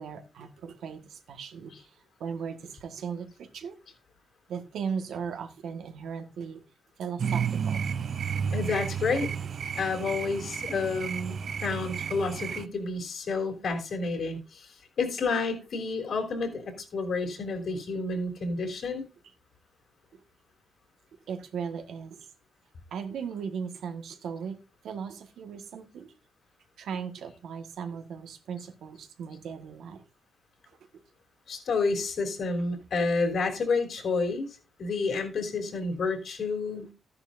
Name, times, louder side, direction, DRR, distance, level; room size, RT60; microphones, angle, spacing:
voice 1, 0.0-1.7 2.2-3.8 4.5-6.6 7.0-7.8 21.3-22.2 22.9-24.6 24.8-26.1 26.8-30.0, right 6 dB, 80° right, 1.6 m, -37 dB
sound 1, 7.2-12.7, right 7 dB, 50° right, 0.4 m, -32 dB
voice 2, 8.5-9.3 9.8-19.1 31.5-36.9, left 4 dB, 60° left, 3.5 m, -30 dB
14.0 x 10.5 x 2.6 m
cardioid pair, 135°, 0 cm